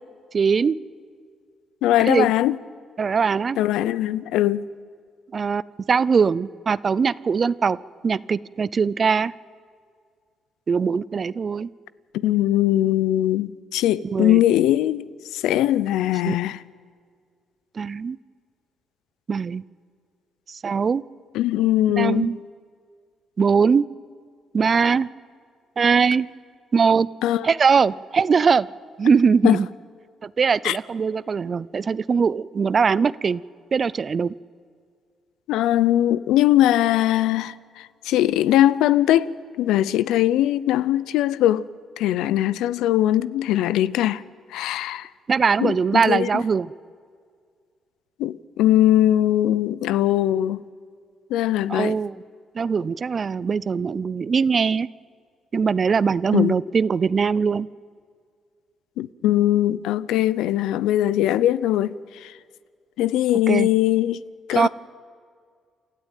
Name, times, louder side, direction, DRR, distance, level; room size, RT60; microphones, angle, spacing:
voice 1, 0.3-0.8 2.0-2.3 3.0-3.6 5.3-5.6 5.9-7.8 8.0-9.3 10.7-11.7 14.0-14.4 16.2-16.4 17.8-18.2 19.3-19.6 20.5-21.0 22.0-22.4 23.4-23.8 24.5-25.1 25.8-26.3 26.7-27.1 27.4-28.7 29.0-29.7 30.2-33.4 33.7-34.3 45.3-46.7 51.7-52.2 52.5-54.9 55.5-57.7 63.5-63.7 64.5-64.7, right 5 dB, 45° right, 0.5 m, -21 dB
voice 2, 1.8-2.6 3.6-4.7 12.1-15.1 15.3-16.6 21.3-22.3 27.2-27.5 29.4-29.6 30.6-30.8 35.5-41.6 42.0-44.2 44.5-45.1 45.6-46.3 48.2-50.6 51.3-51.9 56.3-56.6 59.0-61.9 62.2-62.3 63.0-64.2 64.5-64.7, left 13 dB, 85° left, 0.5 m, -20 dB
28.5 x 13.5 x 9.1 m
supercardioid pair, 70°, 0 cm